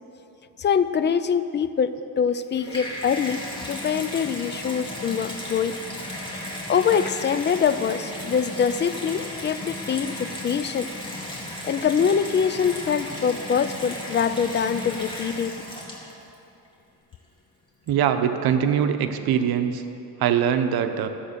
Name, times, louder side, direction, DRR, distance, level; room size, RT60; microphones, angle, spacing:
voice 1, 0.6-3.4 3.7-5.8 6.7-10.9 11.6-15.5, left 7 dB, 30° left, 12 dB, 0.5 m, -24 dB
Water tap faucet / Bathtub (filling or washing), 2.3-16.3 17.1-17.2, left 1 dB, 15° left, 2.4 m, -35 dB
voice 2, 17.9-19.8 20.2-21.1, right 8 dB, 75° right, 8 dB, 0.9 m, -22 dB
14.5 x 7.9 x 6.8 m, 2.9 s
cardioid pair, 120°, 37 cm